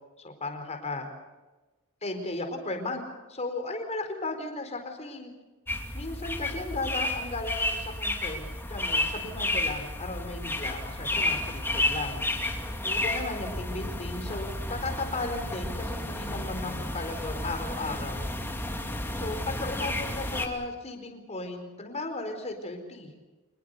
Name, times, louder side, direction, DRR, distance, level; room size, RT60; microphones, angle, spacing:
voice 1, 0.2-1.1 2.0-5.3 5.9-12.4 12.8-18.3 19.1-23.1, left 2 dB, 30° left, 5 dB, 4.5 m, -35 dB
sound 1, 5.7-20.5, left 1 dB, 10° left, 2.7 m, -32 dB
26.0 x 21.0 x 6.8 m, 1.2 s
head